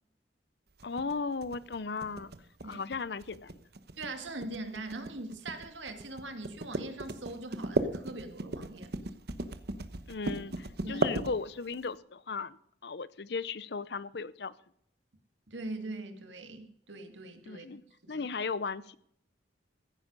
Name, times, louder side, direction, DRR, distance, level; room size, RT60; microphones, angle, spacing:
voice 1, 0.8-2.3 2.6-3.6 10.1-12.6 12.8-14.5 17.5-17.8 18.1-19.0, left 4 dB, 60° left, 18 dB, 0.6 m, -36 dB
sound 1, 0.8-11.8, right 2 dB, 60° right, 1.1 m, -36 dB
voice 2, 4.0-8.9 10.8-11.1 15.5-17.7 18.1-18.3, right 2 dB, 85° right, 7 dB, 2.1 m, -41 dB
15.5 x 9.7 x 5.4 m, 0.69 s
head